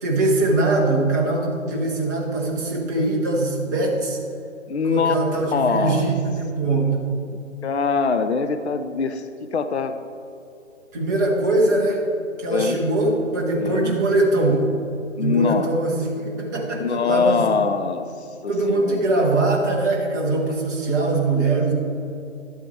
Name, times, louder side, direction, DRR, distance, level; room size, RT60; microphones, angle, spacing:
voice 1, 0.0-4.2 4.9-7.0 10.9-12.0 12.4-14.7 15.2-17.5 18.5-21.7, right 2 dB, 15° right, -2 dB, 0.9 m, -22 dB
voice 2, 4.7-5.2 5.5-6.1 7.3-10.0 12.5-12.8 13.6-14.0 15.2-15.7 16.8-19.0, left 5 dB, 60° left, 9 dB, 0.6 m, -23 dB
11.5 x 8.1 x 4.5 m, 2.6 s
figure-of-eight pair, 140°, 39 cm